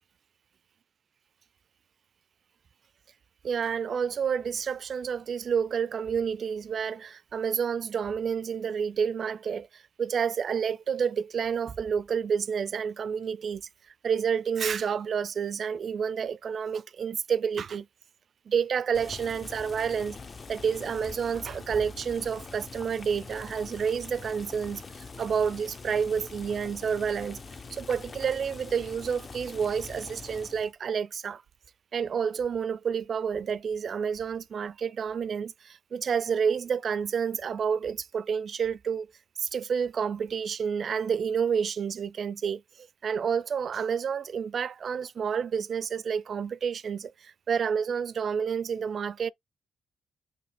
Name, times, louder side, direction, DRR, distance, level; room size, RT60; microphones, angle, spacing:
voice 1, 3.4-13.6 14.0-17.9 18.5-20.2 20.5-27.4 27.7-31.4 31.9-39.1 39.4-49.3, right 7 dB, 50° right, 0.3 m, -29 dB
Boiling, 18.9-30.7, left 4 dB, 35° left, 0.5 m, -44 dB
4.3 x 2.7 x 4.2 m
cardioid pair, 90°, 0 cm